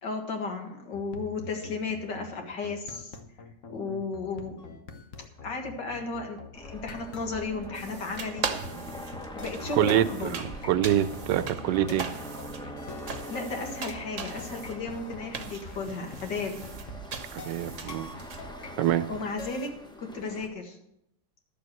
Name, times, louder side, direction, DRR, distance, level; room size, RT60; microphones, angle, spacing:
voice 1, 0.0-3.2 3.7-4.6 5.4-8.5 9.3-10.4 13.3-16.7 19.1-20.8, left 3 dB, 75° left, 3 dB, 2.4 m, -34 dB
sound 1, 0.9-19.7, left 4 dB, 50° left, 1.2 m, -45 dB
sound 2, 6.5-20.5, equal, 5° left, 0.7 m, -43 dB
sound 3, 7.7-18.4, right 6 dB, 50° right, 1.2 m, -40 dB
voice 2, 9.8-12.1 17.3-18.1 18.8-19.1, right 11 dB, 80° right, 15 dB, 1.3 m, -26 dB
12.0 x 7.0 x 7.8 m, 0.79 s
omnidirectional pair, 1.9 m